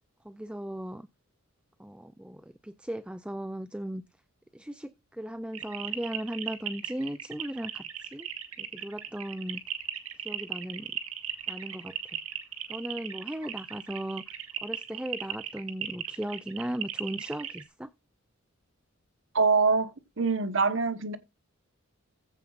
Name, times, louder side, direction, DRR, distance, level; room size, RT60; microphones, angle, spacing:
voice 1, 0.2-1.1 1.8-4.0 4.5-8.3 8.6-9.6 10.2-10.9 11.5-12.2 12.7-14.4 14.6-17.9, right 1 dB, 5° right, 0.4 m, -37 dB
sound 1, 5.5-17.6, right 10 dB, 80° right, 1.9 m, -37 dB
voice 2, 19.3-19.9 20.2-21.2, right 4 dB, 60° right, 1.2 m, -24 dB
15.0 x 7.6 x 2.5 m
head